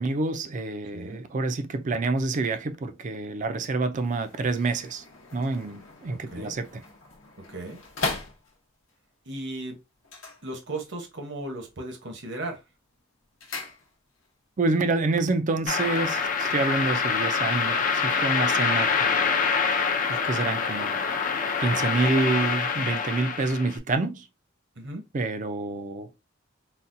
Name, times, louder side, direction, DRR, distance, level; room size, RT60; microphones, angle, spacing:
voice 1, 0.0-5.0 5.3-6.8 14.6-19.3 20.1-21.0 21.6-24.3 25.1-26.1, right 3 dB, 40° right, 0.4 m, -27 dB
voice 2, 0.9-1.2 6.3-6.6 7.5-7.8 9.3-9.8 10.4-12.6 24.8-25.0, right 2 dB, 60° right, 1.0 m, -36 dB
sound 1, 3.9-8.9 10.0-11.1 11.4-11.9 12.3-14.3 14.6-14.7, left 3 dB, 75° left, 0.9 m, -38 dB
sound 2, 15.7-23.8, left 5 dB, 40° left, 0.5 m, -25 dB
4.0 x 2.2 x 2.6 m
head